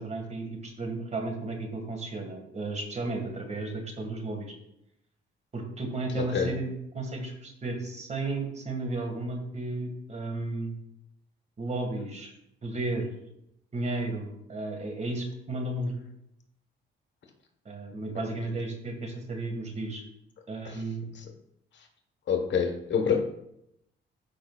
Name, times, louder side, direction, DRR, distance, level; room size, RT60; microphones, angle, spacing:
voice 1, 0.0-4.5 5.5-6.7 6.9-10.8 11.6-12.3 12.6-13.1 13.7-15.9 17.7-20.0 20.5-21.0, right 2 dB, 35° right, 3 dB, 1.9 m, -33 dB
voice 2, 6.2-6.5 20.6-20.8 22.3-23.2, left 7 dB, 65° left, 3 dB, 1.3 m, -26 dB
12.5 x 5.1 x 2.4 m, 0.78 s
cardioid pair, 90°, 20 cm